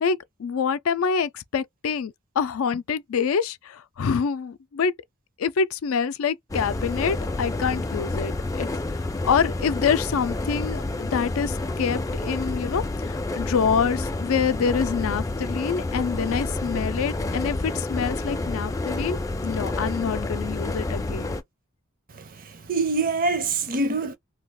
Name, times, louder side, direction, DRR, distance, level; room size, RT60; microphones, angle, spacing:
voice 1, 0.0-4.9 5.4-8.7 9.0-21.4, left 6 dB, 85° left, 0.4 m, -26 dB
sound 1, 6.5-21.4, left 2 dB, 15° left, 0.3 m, -29 dB
voice 2, 22.1-24.1, right 3 dB, 40° right, 0.6 m, -25 dB
2.3 x 2.3 x 3.4 m
head